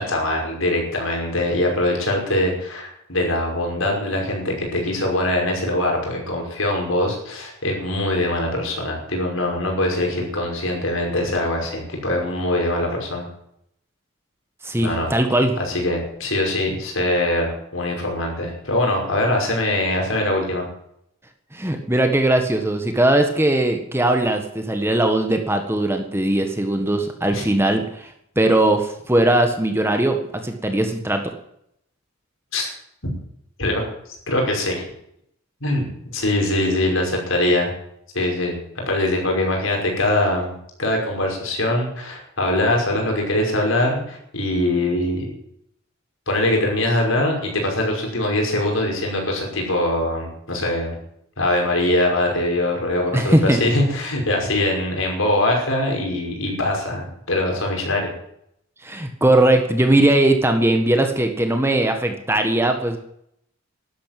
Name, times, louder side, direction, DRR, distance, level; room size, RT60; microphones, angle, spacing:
voice 1, 0.0-13.3 14.8-15.1 15.6-20.6 27.3-27.5 32.5-32.7 33.6-33.9 34.3-34.8 35.6-35.8 36.1-37.7 38.1-40.5 40.8-45.2 46.3-51.0 51.4-58.1, left 1 dB, 65° left, 1 dB, 5.7 m, -22 dB
voice 2, 14.6-15.6 21.5-30.2 30.4-31.2 53.1-53.6 58.8-63.0, right 1 dB, 10° right, 5 dB, 1.5 m, -19 dB
12.5 x 11.0 x 9.3 m, 0.73 s
head